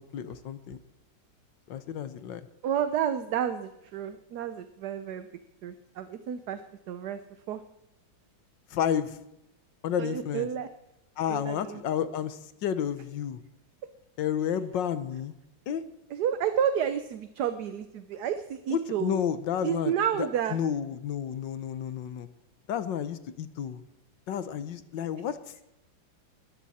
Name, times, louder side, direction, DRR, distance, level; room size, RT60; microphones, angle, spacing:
voice 1, 0.1-0.8 1.7-2.4 8.7-9.2 9.8-10.5 11.2-13.4 14.2-15.3 15.7-15.8 18.7-22.3 22.7-23.8 24.3-25.5, left 9 dB, 70° left, 13 dB, 1.5 m, -31 dB
voice 2, 2.6-5.3 5.6-6.6 6.9-7.2 7.5-7.6 10.0-10.7 11.3-11.8 16.1-19.2 19.6-20.6, right 9 dB, 65° right, 10 dB, 1.2 m, -30 dB
19.5 x 14.0 x 4.3 m, 0.88 s
omnidirectional pair, 2.1 m